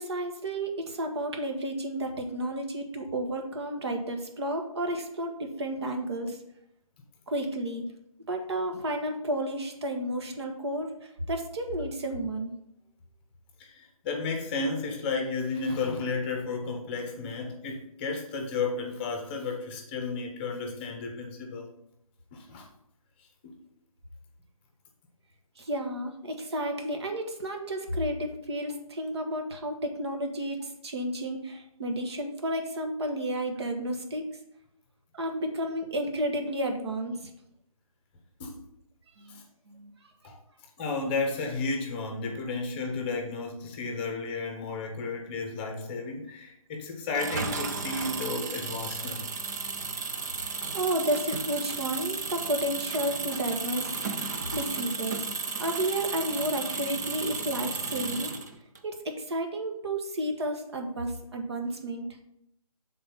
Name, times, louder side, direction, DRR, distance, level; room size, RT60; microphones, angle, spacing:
voice 1, 0.0-6.4 7.3-7.8 8.3-12.5 25.6-34.3 35.1-37.3 39.2-39.4 39.7-39.9 50.7-54.0 54.5-55.3 55.6-58.3 58.8-62.1, right 1 dB, 45° right, 4 dB, 1.3 m, -32 dB
voice 2, 13.6-21.7 22.3-22.7 23.4-23.5 38.4-38.6 39.3-39.4 40.2-40.4 40.8-49.2, left 3 dB, 15° left, 2 dB, 0.9 m, -33 dB
Engine, 47.1-58.8, right 4 dB, 30° right, 0.6 m, -34 dB
7.5 x 4.0 x 5.7 m, 0.78 s
figure-of-eight pair, 155°, 19 cm